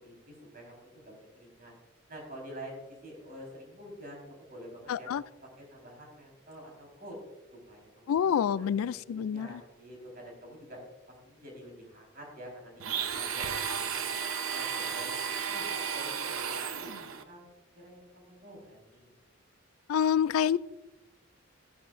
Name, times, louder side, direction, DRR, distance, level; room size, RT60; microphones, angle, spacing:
voice 1, 0.0-1.7 2.1-5.1 5.6-7.2 7.7-10.8 11.1-14.2 14.5-15.6 15.9-17.4 17.7-19.2, equal, 45° right, -1 dB, 4.4 m, -48 dB
voice 2, 4.9-5.2 8.1-9.6 19.9-20.6, left 8 dB, 85° left, 19 dB, 0.3 m, -27 dB
Domestic sounds home sounds, 12.8-17.2, right 7 dB, 85° right, 0.9 m, -33 dB
14.5 x 11.5 x 2.6 m, 1.1 s
head